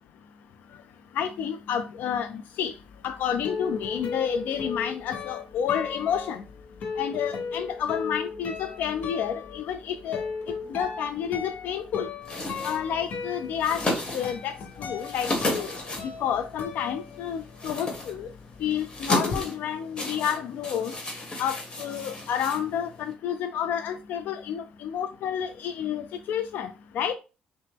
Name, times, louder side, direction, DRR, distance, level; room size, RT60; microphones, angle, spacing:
voice 1, 1.2-2.7 3.0-6.4 7.0-10.3 10.7-12.1 12.6-13.8 14.1-15.7 16.2-18.3 18.6-20.9 21.4-27.1, left 8 dB, 80° left, 0.4 m, -30 dB
sound 1, 2.9-17.7 18.0-19.4, left 5 dB, 55° left, 0.7 m, -37 dB
sound 2, 12.2-23.1, left 2 dB, 30° left, 1.2 m, -34 dB
5.6 x 2.1 x 3.4 m
cardioid pair, 140°, 3 cm